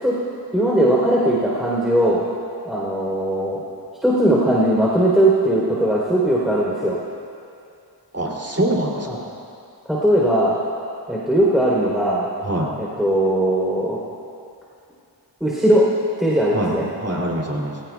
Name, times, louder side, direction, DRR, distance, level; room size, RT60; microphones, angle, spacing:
voice 1, 0.5-2.2 2.6-3.6 4.0-6.9 9.1-9.2 9.9-10.6 11.1-12.3 12.8-14.0 15.4-15.9 16.2-16.9, right 1 dB, ahead, -6 dB, 3.6 m, -19 dB
voice 2, 8.1-9.3 12.4-12.7 16.5-17.7, right 1 dB, 35° right, -2 dB, 2.9 m, -24 dB
23.0 x 16.5 x 2.4 m, 2.5 s
cardioid pair, 45°, 43 cm